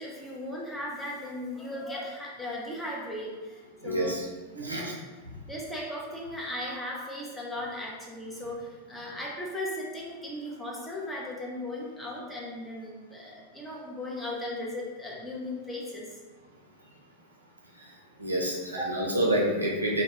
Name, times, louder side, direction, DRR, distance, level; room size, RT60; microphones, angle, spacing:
voice 1, 0.0-4.9 5.5-16.1 18.7-18.9, left 1 dB, 5° left, -4 dB, 0.6 m, -37 dB
voice 2, 3.8-4.2 4.6-4.9 18.2-20.0, right 1 dB, 80° right, -2 dB, 0.4 m, -28 dB
2.2 x 2.0 x 2.8 m, 1.3 s
figure-of-eight pair, 90°, 0 cm